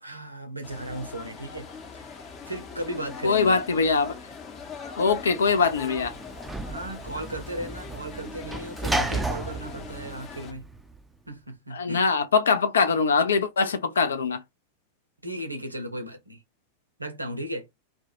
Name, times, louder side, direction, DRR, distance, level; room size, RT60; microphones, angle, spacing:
voice 1, 0.0-2.1 2.5-3.6 6.7-10.7 11.3-12.1 15.2-16.4 17.0-17.7, right 1 dB, 85° right, 0.6 m, -36 dB
sound 1, 0.6-10.5, left 5 dB, 30° left, 0.7 m, -41 dB
voice 2, 3.2-4.1 5.0-6.1 11.7-14.4, left 5 dB, 70° left, 0.4 m, -22 dB
Sliding door / Slam, 5.1-11.0, right 2 dB, 5° right, 0.4 m, -33 dB
2.2 x 2.1 x 2.9 m
figure-of-eight pair, 90°, 0 cm